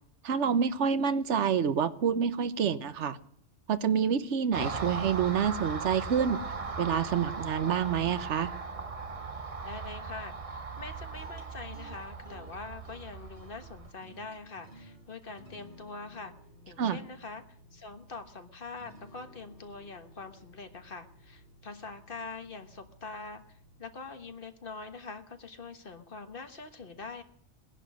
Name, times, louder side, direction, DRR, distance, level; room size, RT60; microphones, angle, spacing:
voice 1, 0.2-3.2 3.7-6.4 6.8-8.5 16.8-17.0, right 7 dB, 85° right, 1.2 m, -27 dB
Car passing by, 4.5-13.9, right 4 dB, 35° right, 1.0 m, -38 dB
voice 2, 9.6-16.3 16.7-17.4 17.7-23.4 23.8-27.2, left 4 dB, 50° left, 1.5 m, -44 dB
sound 1, 10.8-24.4, equal, 30° left, 4.9 m, -56 dB
19.5 x 11.0 x 6.3 m
omnidirectional pair, 1.2 m